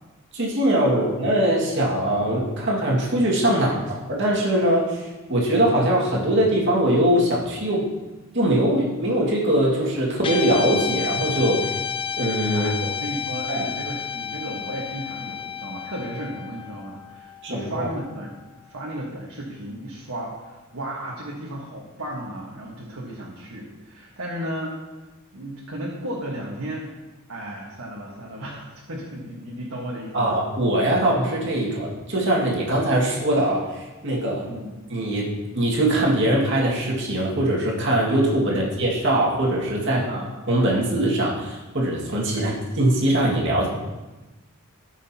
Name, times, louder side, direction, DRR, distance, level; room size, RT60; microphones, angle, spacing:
voice 1, 0.3-7.9 8.3-11.8 12.2-12.7 13.5-13.7 17.4-17.9 30.1-34.5 34.9-40.0 40.5-42.5 42.8-43.7, right 1 dB, 60° right, -3 dB, 2.0 m, -22 dB
Guitar, 10.2-18.7, left 7 dB, 25° left, 0.3 m, -31 dB
voice 2, 12.5-18.3 18.6-24.7 25.3-26.9 27.3-30.4 34.5-34.7 38.5-38.7 39.9-40.3 42.3-42.6, right 1 dB, 85° right, -5 dB, 1.5 m, -34 dB
14.0 x 6.1 x 2.9 m, 1.1 s
head